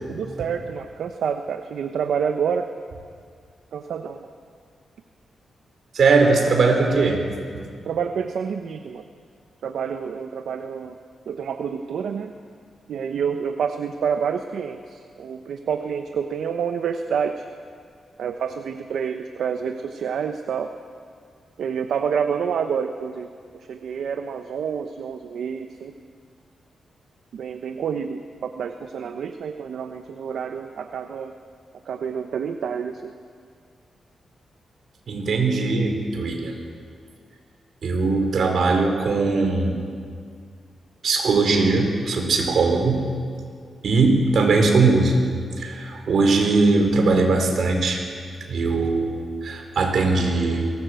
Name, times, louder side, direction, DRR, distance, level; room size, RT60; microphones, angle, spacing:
voice 1, 0.1-2.7 3.7-4.3 7.8-9.0 9.6-11.0 11.3-12.3 12.9-17.4 18.2-20.7 21.6-25.9 27.3-31.3 31.9-33.1, right 7 dB, 80° right, 7 dB, 0.9 m, -28 dB
voice 2, 5.9-7.3 7.5-7.7 35.1-36.5 37.8-39.8 41.0-43.1 43.8-48.0 48.5-50.7, right 3 dB, 65° right, 3 dB, 4.2 m, -20 dB
23.5 x 18.5 x 7.8 m, 2.1 s
wide cardioid pair, 115°, 0 cm